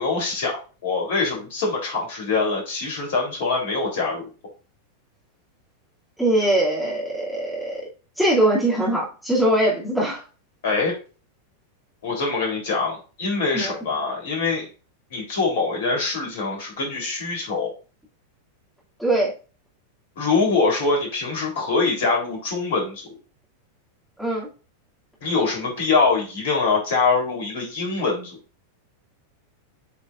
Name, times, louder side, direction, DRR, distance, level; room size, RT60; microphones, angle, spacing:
voice 1, 0.0-4.3 10.6-10.9 12.0-14.7 15.1-17.7 20.2-23.1 25.2-28.4, left 4 dB, 55° left, 0 dB, 3.5 m, -24 dB
voice 2, 6.2-7.8 8.2-10.2 13.5-13.8 19.0-19.3 24.2-24.5, right 1 dB, ahead, -6 dB, 2.6 m, -21 dB
8.3 x 5.1 x 2.5 m, 0.34 s
figure-of-eight pair, 90°, 0 cm